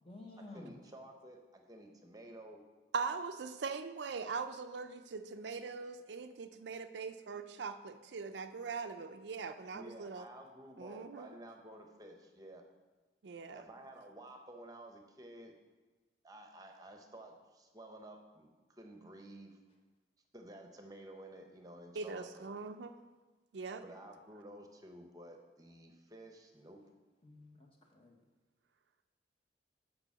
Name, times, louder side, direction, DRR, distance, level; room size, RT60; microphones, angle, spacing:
voice 1, 0.0-0.7 27.2-28.2, left 2 dB, 30° left, 1 dB, 1.1 m, -52 dB
voice 2, 0.5-2.6 9.7-12.7 13.5-15.6 16.2-19.6 20.3-22.5 23.8-26.8, right 1 dB, 20° right, 3 dB, 0.8 m, -52 dB
voice 3, 2.9-10.3 10.8-11.3 13.2-13.6 22.0-23.0 23.5-23.8, right 4 dB, 75° right, 8 dB, 0.5 m, -41 dB
6.8 x 5.4 x 7.2 m, 1.2 s
head